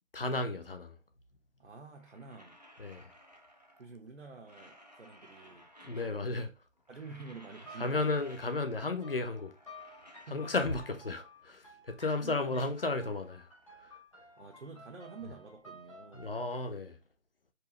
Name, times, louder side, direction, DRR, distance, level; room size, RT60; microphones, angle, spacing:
voice 1, 0.1-1.0 2.8-3.1 5.8-6.5 7.8-9.6 10.3-13.5 13.7-14.0 16.1-17.0, left 3 dB, 45° left, 0.7 m, -34 dB
voice 2, 1.6-2.6 3.8-6.1 6.9-8.2 10.2-10.7 12.2-12.7 14.4-16.3, right 4 dB, 55° right, 1.0 m, -49 dB
sound 1, 1.8-4.0 4.3-6.5 6.8-9.0 9.3-11.4 11.8-13.8 14.1-16.3, equal, 35° right, 0.5 m, -59 dB
sound 2, 7.6-16.7, equal, 25° left, 1.1 m, -54 dB
4.6 x 3.2 x 3.0 m
figure-of-eight pair, 175°, 39 cm